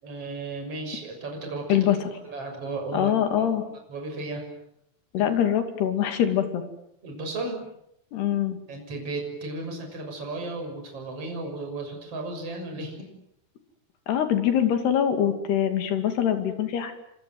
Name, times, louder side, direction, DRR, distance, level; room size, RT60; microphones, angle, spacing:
voice 1, 0.0-1.8 2.2-3.5 3.9-4.4 7.0-7.6 8.7-13.1, right 2 dB, 35° right, 3 dB, 7.4 m, -34 dB
voice 2, 2.9-3.6 5.1-6.6 8.1-8.6 14.1-16.9, left 9 dB, 75° left, 7 dB, 4.6 m, -23 dB
28.5 x 25.5 x 7.9 m, 0.77 s
omnidirectional pair, 4.7 m